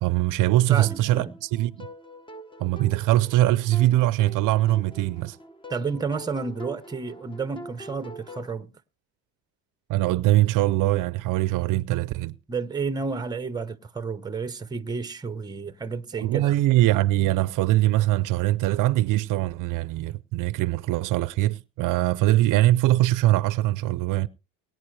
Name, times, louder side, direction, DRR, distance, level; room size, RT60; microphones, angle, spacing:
voice 1, 0.0-1.9 2.6-5.4 9.9-12.3 16.2-24.3, right 16 dB, 65° right, 0.6 m, -22 dB
voice 2, 0.7-1.4 5.7-8.7 12.5-16.5, right 4 dB, 10° right, 0.8 m, -31 dB
sound 1, 0.8-8.5, right 1 dB, 15° left, 1.0 m, -44 dB
22.0 x 9.4 x 3.2 m
cardioid pair, 120°, 35 cm